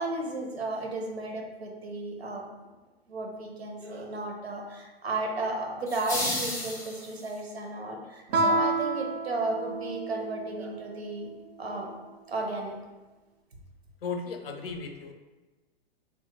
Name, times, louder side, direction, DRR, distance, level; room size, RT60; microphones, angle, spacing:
voice 1, 0.0-2.4 3.1-11.3 11.6-11.9 12.3-12.8, right 2 dB, 85° right, 1 dB, 0.7 m, -34 dB
sound 1, 5.9-7.4, left 1 dB, 10° left, 0.4 m, -33 dB
Guitar, 8.3-10.8, right 2 dB, 45° right, 0.5 m, -29 dB
voice 2, 14.0-15.1, left 5 dB, 70° left, 4 dB, 0.5 m, -35 dB
2.9 x 2.1 x 3.4 m, 1.2 s
figure-of-eight pair, 105°, 31 cm